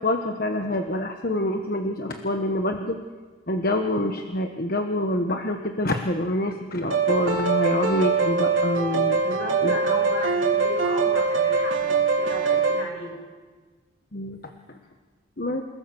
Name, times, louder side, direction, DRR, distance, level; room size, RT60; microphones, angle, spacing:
voice 1, 0.0-3.0 3.5-9.7 14.1-14.5 15.4-15.6, left 1 dB, 45° left, 5 dB, 1.3 m, -26 dB
sound 1, 6.9-12.8, right 4 dB, 70° right, 3.4 m, -23 dB
voice 2, 9.2-13.3, left 1 dB, 65° left, 0 dB, 7.7 m, -35 dB
28.5 x 19.0 x 7.2 m, 1.4 s
head